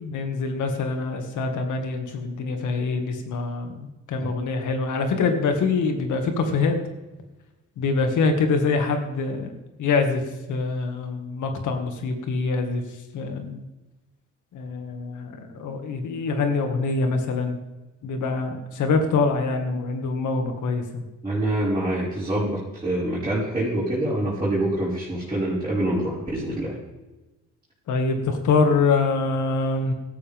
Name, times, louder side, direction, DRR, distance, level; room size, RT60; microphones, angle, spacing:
voice 1, 0.0-6.8 7.8-9.5 9.8-10.2 10.5-12.8 13.1-13.6 14.5-17.6 18.0-21.0 27.9-29.9, left 4 dB, 80° left, 5 dB, 2.2 m, -24 dB
voice 2, 21.2-26.7, right 1 dB, 15° right, -11 dB, 5.7 m, -25 dB
17.0 x 13.0 x 3.7 m, 1.1 s
cardioid pair, 90°, 30 cm